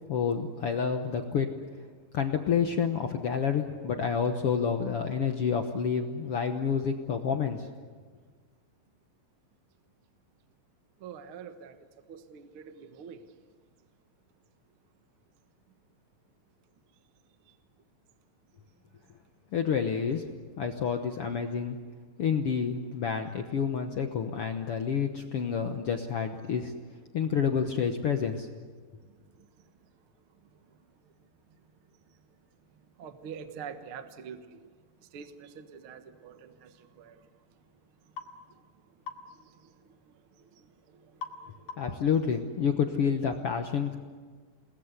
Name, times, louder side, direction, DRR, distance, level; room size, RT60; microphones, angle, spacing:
voice 1, 0.1-1.5 2.1-7.7 19.5-20.2 20.6-21.8 22.2-26.7 27.1-28.5 41.8-44.0, left 6 dB, 65° left, 5 dB, 1.4 m, -29 dB
voice 2, 11.0-11.8 12.1-13.2 17.4-17.5 29.0-29.6 30.4-30.8 31.0-31.1 32.1-32.2 32.7-34.7 35.0-37.4 38.0-42.1 42.4-42.5 43.9-44.0, right 7 dB, 55° right, 8 dB, 1.5 m, -48 dB
sound 1, 38.2-38.3 39.1-39.3 41.2-41.4 41.7-42.0, left 5 dB, 85° left, 4.0 m, -40 dB
29.0 x 20.5 x 8.2 m, 1.5 s
omnidirectional pair, 4.2 m